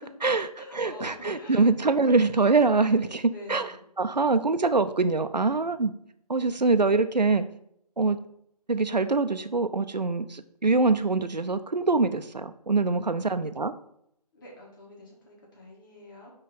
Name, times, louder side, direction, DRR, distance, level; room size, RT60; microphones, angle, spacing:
voice 1, 0.2-2.9 3.3-3.8 14.3-16.3, left 2 dB, 30° left, -3 dB, 2.3 m, -46 dB
voice 2, 0.8-3.7 4.0-5.9 6.3-7.4 8.0-8.2 8.7-13.7, right 3 dB, 85° right, 10 dB, 0.6 m, -24 dB
9.6 x 3.3 x 4.0 m, 0.73 s
figure-of-eight pair, 150°, 21 cm